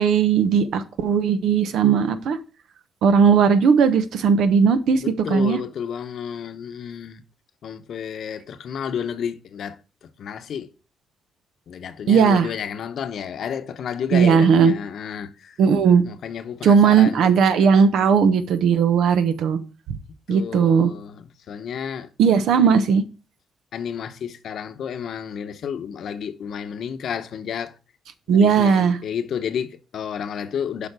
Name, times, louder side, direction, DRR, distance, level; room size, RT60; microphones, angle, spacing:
voice 1, 0.0-2.4 3.0-5.0 5.3-5.6 12.1-12.5 14.1-14.7 15.6-16.0 16.6-19.6 20.3-20.9 22.2-23.0 28.3-29.0, right 6 dB, 75° right, 1.0 m, -17 dB
voice 2, 5.0-7.2 7.6-10.7 11.7-15.6 16.0-17.3 20.3-22.1 23.7-27.8 28.3-30.9, left 8 dB, 65° left, 0.9 m, -31 dB
7.0 x 5.2 x 6.7 m
cardioid pair, 85°, 0 cm